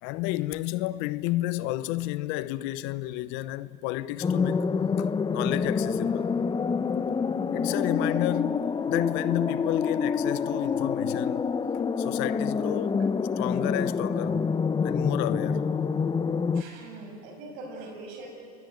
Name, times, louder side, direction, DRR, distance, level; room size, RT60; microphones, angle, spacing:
voice 1, 0.0-4.7 5.0-6.4 7.5-11.6 12.0-13.1 13.4-14.5 14.8-15.7, left 17 dB, 70° left, 0.9 m, -31 dB
sound 1, 4.2-16.6, left 5 dB, 25° left, 1.0 m, -27 dB
voice 2, 16.5-18.3, right 2 dB, 75° right, 7.0 m, -42 dB
29.0 x 20.5 x 9.8 m
hypercardioid pair, 80°, 20 cm